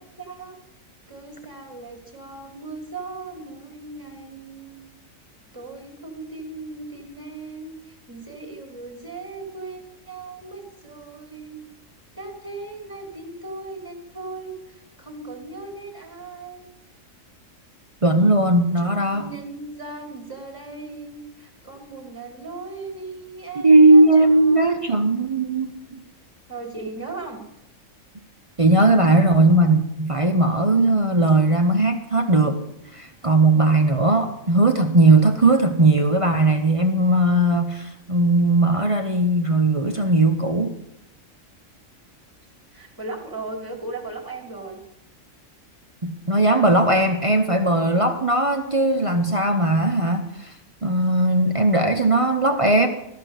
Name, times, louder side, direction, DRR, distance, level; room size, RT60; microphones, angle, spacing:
voice 1, 0.2-0.6 1.1-4.8 5.5-11.6 12.1-16.7 18.8-24.7 26.5-27.4 42.7-44.8, right 3 dB, 15° right, 3 dB, 2.5 m, -37 dB
voice 2, 18.0-19.3 23.6-26.0 28.6-40.8 46.0-50.5 50.8-52.9, right 2 dB, 30° right, 5 dB, 0.7 m, -18 dB
13.5 x 6.2 x 8.1 m, 0.84 s
omnidirectional pair, 1.4 m